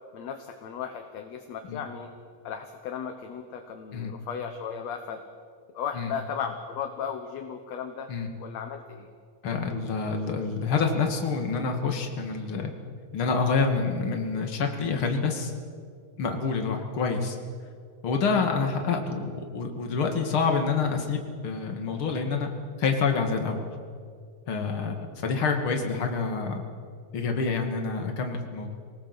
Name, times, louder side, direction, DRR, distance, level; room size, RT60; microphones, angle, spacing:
voice 1, 0.1-2.1 2.4-5.2 5.7-8.1 8.4-9.1, left 7 dB, 60° left, 6 dB, 2.0 m, -35 dB
voice 2, 9.4-12.7 13.1-15.5 16.2-17.4 18.0-22.5 22.8-23.6 24.5-26.6 27.1-28.7, left 5 dB, 40° left, 4 dB, 2.6 m, -27 dB
24.5 x 19.0 x 8.0 m, 2.1 s
omnidirectional pair, 4.0 m